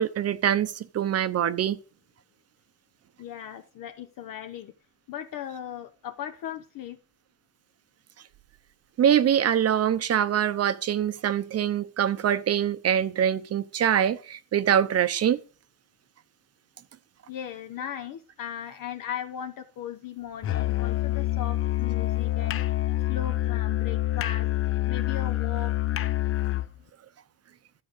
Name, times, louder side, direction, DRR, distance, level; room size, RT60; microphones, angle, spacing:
voice 1, 0.0-1.8 9.0-15.4, right 9 dB, 40° right, 0.8 m, -24 dB
voice 2, 3.2-4.7 5.1-7.0 17.3-22.6 23.0-24.5 24.9-25.8, left 9 dB, 60° left, 1.1 m, -37 dB
Musical instrument, 20.4-26.7, left 16 dB, 35° left, 0.5 m, -27 dB
12.5 x 5.0 x 8.2 m
cardioid pair, 165°, 38 cm